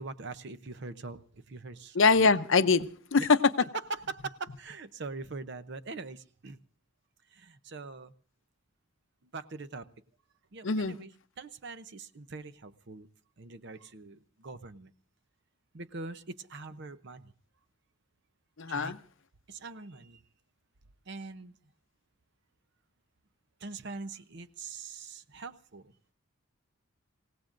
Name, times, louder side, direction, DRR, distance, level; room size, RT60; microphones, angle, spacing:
voice 1, 0.0-2.3 3.2-3.3 3.9-6.6 7.3-8.1 9.3-9.9 10.5-11.1 11.4-13.1 13.4-14.9 15.7-17.3 18.7-18.9 19.5-20.2 21.1-21.5 23.6-25.9, right 3 dB, 55° right, 0.7 m, -42 dB
voice 2, 1.9-3.4 10.6-11.0 18.6-19.0, left 4 dB, 65° left, 0.7 m, -23 dB
26.5 x 17.0 x 2.6 m
head